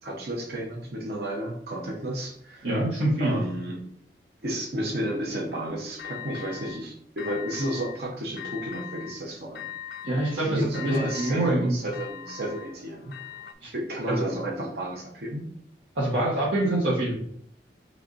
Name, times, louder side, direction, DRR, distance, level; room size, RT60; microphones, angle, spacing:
voice 1, 0.0-2.7 3.2-3.9 4.4-9.7 10.3-13.1 13.7-15.5, right 1 dB, 60° right, -1 dB, 0.8 m, -32 dB
voice 2, 2.6-3.4 10.0-11.7 13.6-13.7 14.1-14.2 15.9-17.1, right 1 dB, 85° right, -7 dB, 1.2 m, -25 dB
sound 1, 6.0-6.8 7.2-8.0 8.4-9.2 9.5-13.5, left 10 dB, 60° left, 0.4 m, -41 dB
5.3 x 3.4 x 2.6 m, 0.68 s
head